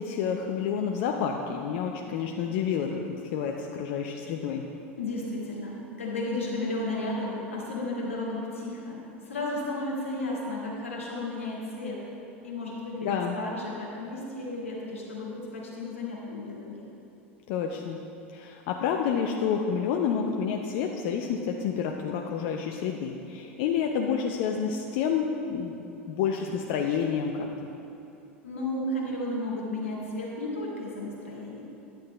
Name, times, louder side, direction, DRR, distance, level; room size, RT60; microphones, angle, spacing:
voice 1, 0.0-3.0 3.3-4.6 13.0-13.3 17.5-18.0 18.3-27.5, left 7 dB, 60° left, 2 dB, 0.5 m, -29 dB
voice 2, 5.0-12.1 12.4-16.9 28.4-31.6, left 2 dB, 90° left, -4 dB, 1.5 m, -33 dB
10.5 x 9.0 x 2.2 m, 3.0 s
hypercardioid pair, 80°, 7 cm